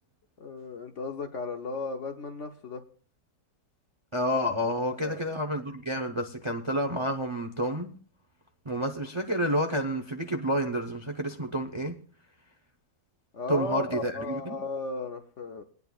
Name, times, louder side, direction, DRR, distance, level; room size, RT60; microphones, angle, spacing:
voice 1, 0.4-2.8 5.0-5.2 13.3-15.6, left 3 dB, 55° left, 0.9 m, -35 dB
voice 2, 4.1-8.0 8.6-12.0 13.5-14.6, equal, 45° right, 0.4 m, -29 dB
22.5 x 9.5 x 2.4 m
omnidirectional pair, 2.0 m